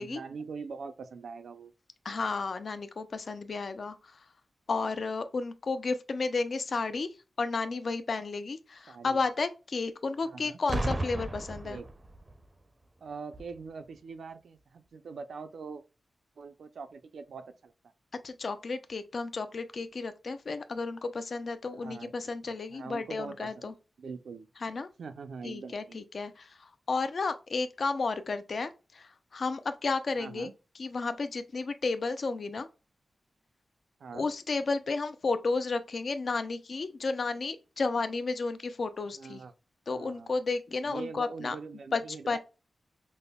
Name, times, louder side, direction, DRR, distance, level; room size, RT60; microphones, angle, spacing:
voice 1, 0.0-1.7 8.9-9.2 10.2-10.6 11.6-11.9 13.0-15.8 16.4-17.7 21.8-22.3 22.7-23.7 24.0-24.5 25.0-26.0 30.2-30.5 34.0-34.3 39.1-39.5 39.9-40.3 40.8-42.4, right 5 dB, 85° right, 0.4 m, -43 dB
voice 2, 2.0-4.2 4.7-7.1 7.4-11.8 18.2-23.7 24.6-24.9 25.4-30.5 30.8-32.7 34.1-39.4 39.9-41.6 41.9-42.0 42.3-42.4, left 4 dB, 60° left, 0.4 m, -32 dB
Boom, 10.7-12.4 13.3-13.6, right 1 dB, 30° right, 0.5 m, -34 dB
5.3 x 2.0 x 2.2 m
wide cardioid pair, 95°, 0 cm